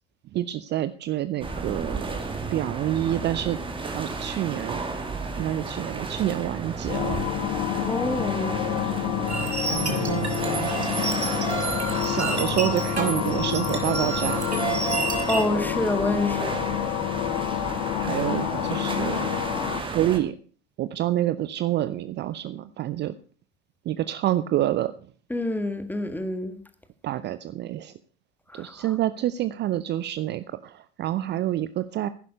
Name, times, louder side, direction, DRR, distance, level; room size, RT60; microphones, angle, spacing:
voice 1, 0.3-4.8 5.4-7.2 9.0-9.2 9.7-10.9 12.0-14.5 17.9-19.3 19.9-20.3 20.8-23.1 23.9-24.9 27.0-27.9 28.5-32.1, right 13 dB, 35° right, 0.6 m, -28 dB
sound 1, 1.4-20.2, right 3 dB, 15° right, 2.2 m, -33 dB
sound 2, 6.9-19.8, left 18 dB, 45° left, 0.5 m, -29 dB
voice 2, 7.8-8.7 15.3-16.6 25.3-26.6 28.5-28.7, left 1 dB, 5° left, 1.5 m, -27 dB
sound 3, 9.3-15.5, right 4 dB, 90° right, 1.8 m, -30 dB
11.0 x 11.0 x 5.4 m
figure-of-eight pair, 70°, 33 cm